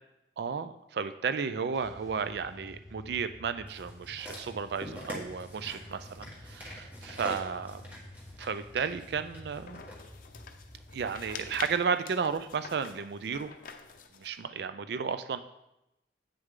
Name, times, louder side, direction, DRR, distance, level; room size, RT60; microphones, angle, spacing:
voice 1, 0.4-7.8 8.4-9.8 10.9-13.5 14.1-15.4, right 6 dB, 65° right, 11 dB, 0.4 m, -33 dB
sound 1, 1.7-11.7, left 1 dB, 20° left, 0.9 m, -50 dB
sound 2, 3.7-10.0 10.8-10.9, left 1 dB, 10° right, 1.7 m, -45 dB
sound 3, 9.3-14.4, left 6 dB, 50° left, 0.6 m, -47 dB
8.3 x 6.5 x 3.7 m, 0.89 s
head